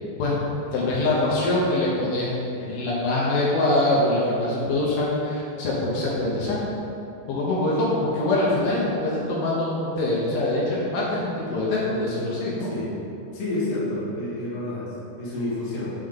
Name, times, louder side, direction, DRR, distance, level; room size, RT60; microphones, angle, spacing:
voice 1, 0.7-6.6 7.3-12.7, left 2 dB, 75° left, -7 dB, 2.7 m, -24 dB
voice 2, 13.3-14.9 15.2-15.9, left 2 dB, 50° left, -8 dB, 2.1 m, -29 dB
6.7 x 5.3 x 3.7 m, 2.7 s
omnidirectional pair, 4.6 m